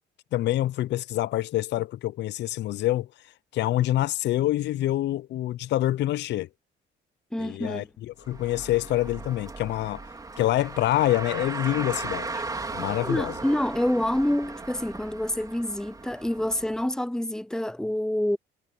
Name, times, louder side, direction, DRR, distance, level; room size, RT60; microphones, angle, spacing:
voice 1, 0.3-3.1 3.5-6.5 7.4-10.0 10.4-12.4 12.7-13.3, left 14 dB, 65° left, 0.5 m, -26 dB
voice 2, 7.3-7.9 13.0-18.4, left 1 dB, 5° left, 0.4 m, -27 dB
Car, 8.2-16.8, right 3 dB, 20° right, 3.8 m, -37 dB
cardioid pair, 140°, 19 cm